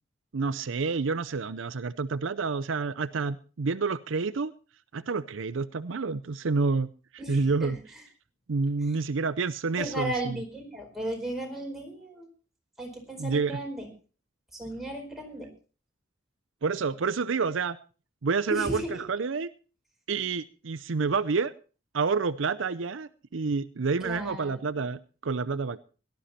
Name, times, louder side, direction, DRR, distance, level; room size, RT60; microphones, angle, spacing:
voice 1, 0.3-4.5 4.9-6.9 7.3-7.8 8.5-10.4 13.2-13.6 16.6-17.8 18.2-18.8 19.1-19.5 20.1-21.5 21.9-25.8, right 4 dB, 75° right, 15 dB, 0.6 m, -28 dB
voice 2, 7.2-8.0 8.8-9.0 9.8-12.3 12.8-13.9 14.5-15.5 18.5-19.0 24.0-24.9, right 1 dB, ahead, 0 dB, 4.7 m, -36 dB
18.0 x 11.5 x 4.3 m, 0.37 s
head